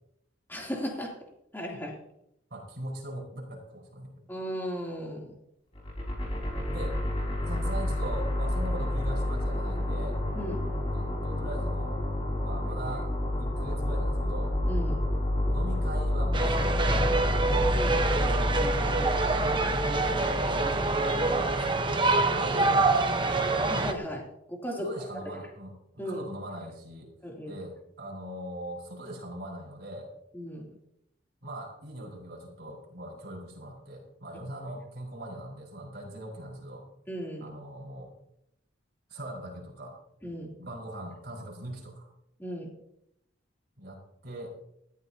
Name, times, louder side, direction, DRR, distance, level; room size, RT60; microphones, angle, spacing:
voice 1, 0.5-1.1 1.5-1.9 4.3-5.3 10.3-10.6 14.7-15.0 17.7-18.0 19.7-20.0 23.7-24.9 25.3-25.4 26.0-26.2 27.2-27.6 30.3-30.7 37.1-37.5 40.2-40.5 42.4-42.7, equal, 10° left, -2 dB, 3.1 m, -36 dB
voice 2, 2.5-4.2 6.7-7.0 7.4-10.2 10.9-12.1 12.4-13.1 13.4-14.5 15.5-17.3 20.0-20.2 20.7-23.5 24.8-27.1 27.5-30.1 31.4-36.8 37.4-38.1 39.1-40.0 40.6-42.1 43.8-44.6, right 1 dB, 55° right, -2 dB, 5.0 m, -40 dB
sound 1, 5.7-21.9, left 1 dB, 30° left, 4.9 m, -30 dB
sound 2, 16.3-23.9, right 3 dB, 25° right, 1.1 m, -26 dB
19.5 x 14.5 x 2.9 m, 0.79 s
head